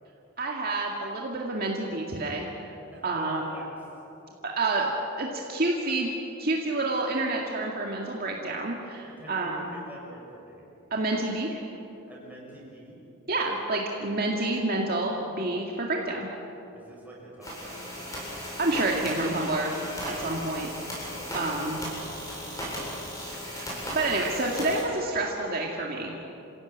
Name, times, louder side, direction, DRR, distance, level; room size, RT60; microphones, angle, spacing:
voice 1, 0.4-2.7 3.0-3.4 4.4-4.9 5.2-6.1 6.4-9.7 10.9-11.6 13.3-16.3 18.6-19.7 20.0-20.7 21.3-21.8 23.5-26.1, right 2 dB, 45° right, -1 dB, 2.2 m, -28 dB
voice 2, 2.9-3.7 9.0-10.6 12.1-13.0 16.7-18.1 21.1-21.4 21.7-21.8 22.4-23.0, right 1 dB, 10° right, -4 dB, 6.6 m, -46 dB
sound 1, 17.4-24.8, equal, 15° left, 7.8 m, -36 dB
28.0 x 16.5 x 9.4 m, 3.0 s
head